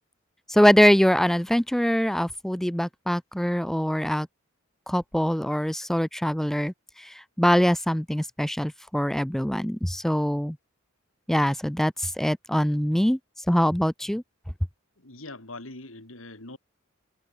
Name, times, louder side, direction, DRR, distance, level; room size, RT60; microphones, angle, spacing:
voice 1, 0.5-4.3 4.9-6.7 7.0-7.1 7.4-10.6 11.3-13.2 13.5-14.2, equal, ahead, 0.4 m, -23 dB
voice 2, 15.0-16.6, left 2 dB, 80° left, 4.2 m, -42 dB
head